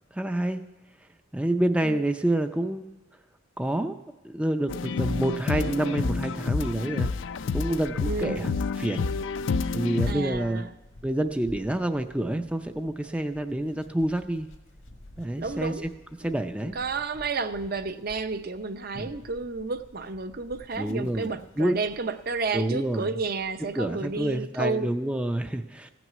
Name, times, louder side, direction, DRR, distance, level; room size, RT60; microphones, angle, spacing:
voice 1, 0.1-0.6 1.3-2.9 3.6-4.0 4.2-7.1 7.5-8.5 8.8-9.1 9.7-10.6 11.0-14.5 15.2-15.7 16.2-16.8 18.9-19.1 20.8-21.8 22.5-23.1 23.7-25.9, right 1 dB, 5° right, 0.4 m, -28 dB
sound 1, 4.7-10.1, left 4 dB, 70° left, 0.4 m, -29 dB
sound 2, 7.0-24.4, left 1 dB, 85° left, 1.6 m, -51 dB
voice 2, 8.0-8.6 10.1-10.7 15.4-15.9 16.2-16.3 16.7-24.9, right 4 dB, 50° right, 0.7 m, -31 dB
15.5 x 6.1 x 9.3 m
head